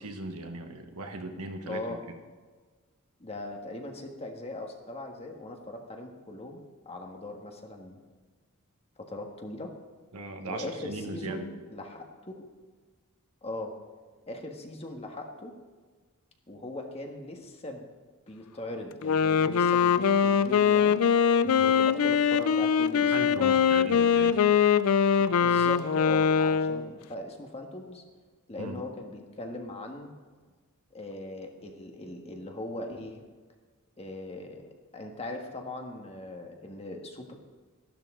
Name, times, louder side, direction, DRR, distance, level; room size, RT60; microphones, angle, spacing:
voice 1, 0.0-2.0 10.1-11.5 21.4-21.6 23.1-24.4 28.6-28.8, right 2 dB, 85° right, 5 dB, 1.3 m, -38 dB
voice 2, 1.6-2.0 3.2-6.6 6.8-8.0 9.0-9.7 10.4-12.0 12.3-12.4 13.4-13.7 14.3-15.6 16.5-17.8 18.3-21.0 21.5-23.6 25.1-28.0 28.5-30.1 30.9-33.2 34.0-37.3, left 2 dB, 25° left, 3 dB, 1.5 m, -39 dB
Wind instrument woodwind instrument, 18.9-26.9, left 7 dB, 70° left, 0.4 m, -23 dB
13.5 x 12.0 x 3.8 m, 1.4 s
head